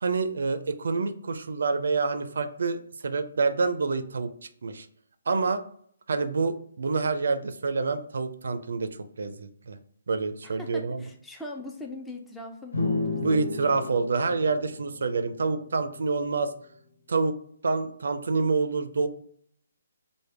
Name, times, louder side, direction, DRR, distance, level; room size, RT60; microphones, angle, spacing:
voice 1, 0.0-4.3 4.6-4.9 5.3-5.6 6.1-9.8 10.1-11.0 13.2-16.5 17.1-17.3 17.6-19.1, right 4 dB, 70° right, 10 dB, 0.4 m, -27 dB
voice 2, 10.4-13.4, left 2 dB, 5° left, 1 dB, 0.3 m, -41 dB
sound 1, 12.7-16.3, left 3 dB, 90° left, 0.8 m, -33 dB
3.3 x 2.1 x 3.2 m, 0.64 s
hypercardioid pair, 150°, 0 cm